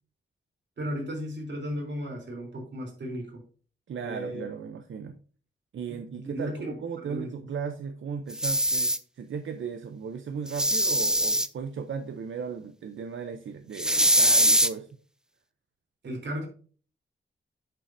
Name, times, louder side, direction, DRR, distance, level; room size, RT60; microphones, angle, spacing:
voice 1, 0.8-3.4 4.0-4.4 5.9-7.5 16.0-16.5, equal, 65° right, 1 dB, 3.5 m, -35 dB
voice 2, 3.9-5.2 5.7-14.9, right 6 dB, 85° right, 7 dB, 0.7 m, -36 dB
sound 1, 8.3-9.0 10.5-11.5 13.8-14.7, right 1 dB, 5° right, 0.5 m, -22 dB
9.0 x 7.0 x 2.7 m, 0.42 s
wide cardioid pair, 120°, 20 cm